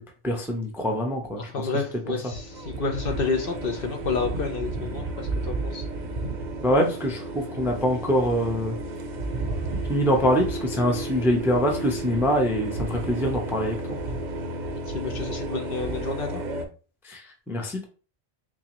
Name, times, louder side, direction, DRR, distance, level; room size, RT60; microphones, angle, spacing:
voice 1, 0.2-1.4 6.6-7.2 7.6-8.7 9.9-13.8 17.1-17.2 17.5-17.8, equal, 5° right, 2 dB, 0.5 m, -24 dB
voice 2, 1.4-5.8 14.9-16.3, left 4 dB, 60° left, 4 dB, 0.8 m, -30 dB
sound 1, 2.3-16.6, right 2 dB, 50° right, 0.7 m, -32 dB
3.8 x 2.9 x 3.0 m, 0.37 s
omnidirectional pair, 1.1 m